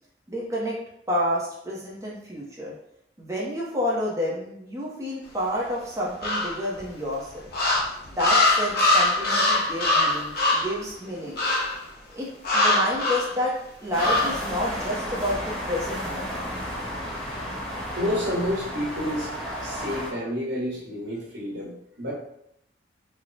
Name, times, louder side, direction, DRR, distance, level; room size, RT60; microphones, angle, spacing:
voice 1, 0.3-0.8 1.1-2.7 3.2-7.4 8.1-11.4 12.1-16.4, equal, 15° right, -4 dB, 0.6 m, -29 dB
sound 1, 6.2-6.8 7.5-10.8 11.4-11.8 12.4-13.3 14.0-14.4, left 2 dB, 55° left, 0.8 m, -22 dB
sound 2, 13.9-20.1, equal, 5° left, 1.0 m, -33 dB
voice 2, 18.0-19.3 19.6-22.1, left 1 dB, 80° right, -3 dB, 1.1 m, -29 dB
3.1 x 2.1 x 3.9 m, 0.76 s
head